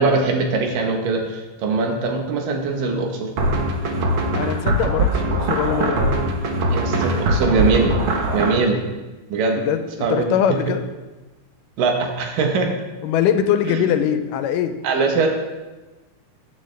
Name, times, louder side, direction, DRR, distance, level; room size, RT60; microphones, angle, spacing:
voice 1, 0.0-3.3 6.7-8.0 8.3-8.8 9.3-9.7 10.0-10.6 11.8-12.8 13.7-13.8 14.8-15.3, right 4 dB, 85° right, 3 dB, 2.9 m, -21 dB
sound 1, 3.4-8.6, right 1 dB, 65° right, 1.3 m, -21 dB
voice 2, 4.3-6.0 9.5-10.9 13.0-14.7, left 9 dB, 85° left, 9 dB, 2.3 m, -22 dB
12.5 x 8.9 x 3.4 m, 1.2 s
omnidirectional pair, 3.8 m